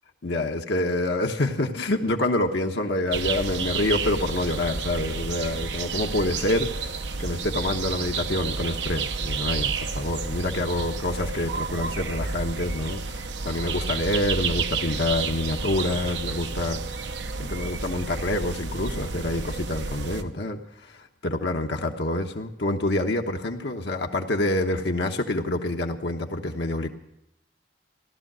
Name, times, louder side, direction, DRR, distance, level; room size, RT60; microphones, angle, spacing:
voice 1, 0.2-26.9, left 1 dB, 65° left, 3 dB, 1.1 m, -27 dB
sound 1, 3.1-20.2, right 4 dB, 70° right, 0.9 m, -31 dB
16.5 x 12.0 x 6.2 m, 0.81 s
head